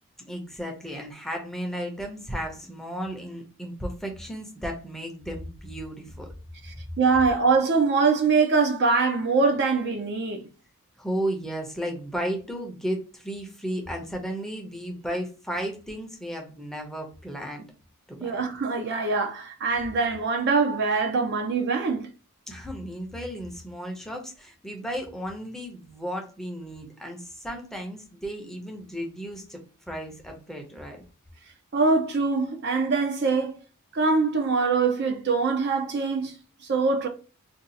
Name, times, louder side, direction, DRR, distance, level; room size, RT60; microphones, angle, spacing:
voice 1, 0.2-6.3 11.0-17.7 18.1-18.3 22.5-29.6 29.9-31.0, equal, ahead, 0.6 m, -34 dB
voice 2, 6.6-10.5 18.2-22.1 31.7-33.6 33.9-36.3 36.7-37.1, right 4 dB, 50° right, 0.5 m, -23 dB
2.6 x 2.3 x 3.9 m
head